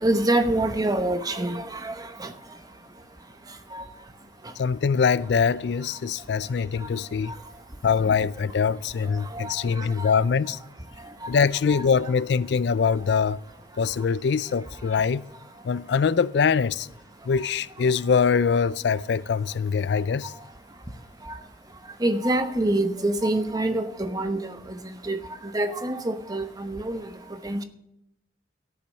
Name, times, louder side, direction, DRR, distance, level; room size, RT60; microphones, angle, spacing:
voice 1, 0.0-2.3 3.7-3.8 9.3-10.1 11.2-11.3 11.7-11.8 21.3-21.4 22.0-24.6 25.0-25.2 25.5-27.1 27.4-27.6, right 1 dB, 20° right, 0.9 m, -26 dB
voice 2, 4.6-7.3 7.8-10.6 11.3-13.4 13.8-15.2 15.6-16.9 17.3-20.3, left 6 dB, 65° left, 0.4 m, -23 dB
13.5 x 8.5 x 6.4 m
head